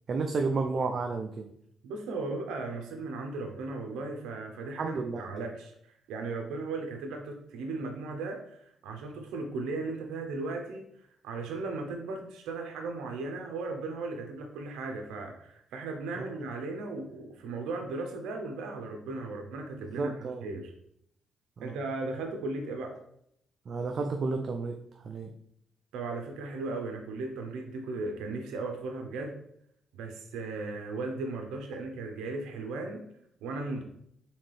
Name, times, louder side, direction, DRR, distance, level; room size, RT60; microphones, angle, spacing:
voice 1, 0.1-1.5 4.8-5.2 16.2-16.3 20.0-20.5 21.6-21.7 23.7-24.8 25.0-25.3, right 4 dB, 50° right, 4 dB, 0.4 m, -31 dB
voice 2, 1.8-5.7 6.1-10.9 11.2-20.1 20.4-20.7 21.6-23.0 25.9-29.3 29.9-33.0 33.4-33.8, right 3 dB, 90° right, 3 dB, 0.7 m, -36 dB
4.3 x 3.7 x 3.2 m, 0.72 s
cardioid pair, 90°, 0 cm